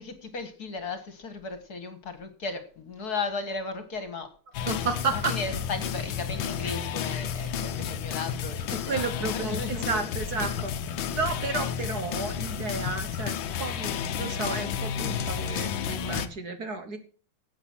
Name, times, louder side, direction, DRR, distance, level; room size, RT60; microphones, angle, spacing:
voice 1, 0.0-4.3 5.1-9.1 9.3-10.5, left 4 dB, 50° left, 9 dB, 2.0 m, -36 dB
sound 1, 4.5-16.3, left 8 dB, 70° left, 1.5 m, -31 dB
voice 2, 4.7-5.3 8.7-10.7 11.1-17.0, right 4 dB, 50° right, 9 dB, 1.6 m, -32 dB
11.5 x 8.2 x 6.1 m, 0.41 s
omnidirectional pair, 2.3 m